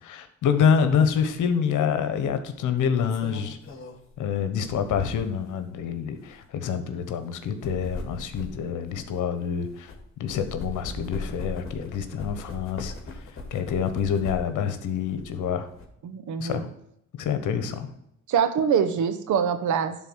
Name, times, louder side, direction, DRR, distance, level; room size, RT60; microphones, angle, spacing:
voice 1, 0.0-3.6 4.2-9.9 10.2-12.9 13.5-15.7 16.4-16.7 17.2-17.9, left 7 dB, 80° left, 9 dB, 1.2 m, -26 dB
sound 1, 1.1-1.3 2.6-5.5 6.1-6.3 7.4-10.0 10.3-14.6 15.0-15.8, left 2 dB, 45° left, 2.5 m, -39 dB
voice 2, 16.0-16.7 18.3-20.0, right 7 dB, 75° right, 10 dB, 1.2 m, -24 dB
11.5 x 4.0 x 6.3 m, 0.77 s
cardioid pair, 90°, 30 cm